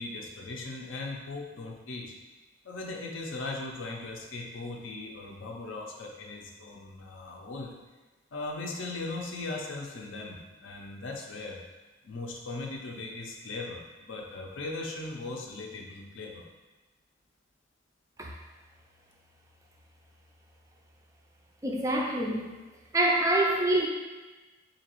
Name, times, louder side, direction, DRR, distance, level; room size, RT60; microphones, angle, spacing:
voice 1, 0.0-2.1 2.6-7.7 8.3-11.6 12.0-16.4, left 2 dB, 70° left, 1 dB, 0.5 m, -38 dB
voice 2, 21.6-22.5 22.9-23.9, right 1 dB, 15° right, -1 dB, 0.3 m, -26 dB
3.9 x 2.8 x 2.9 m, 1.2 s
head